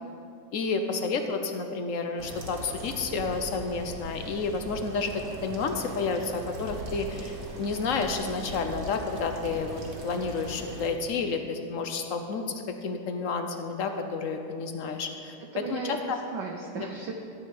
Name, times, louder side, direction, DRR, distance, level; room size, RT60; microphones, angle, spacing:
voice 1, 0.5-16.2 16.8-16.9, left 4 dB, 70° left, 6 dB, 0.7 m, -30 dB
sound 1, 2.2-10.9, right 1 dB, 40° right, 1.6 m, -40 dB
voice 2, 15.4-17.1, right 5 dB, 65° right, 2 dB, 1.2 m, -36 dB
14.0 x 6.2 x 8.5 m, 2.6 s
omnidirectional pair, 2.4 m